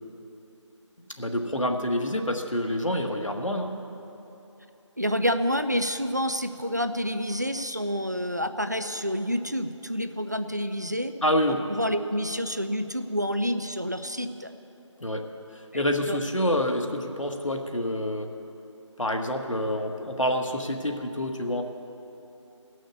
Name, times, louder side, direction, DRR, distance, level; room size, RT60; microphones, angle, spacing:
voice 1, 1.1-3.7 11.2-11.6 15.0-15.3 15.5-18.3 19.0-21.6, left 1 dB, 80° left, 4 dB, 1.3 m, -27 dB
voice 2, 5.0-11.1 11.5-14.5 15.7-16.2, equal, 35° right, 9 dB, 0.4 m, -28 dB
16.5 x 6.4 x 8.2 m, 3.0 s
figure-of-eight pair, 165°, 16 cm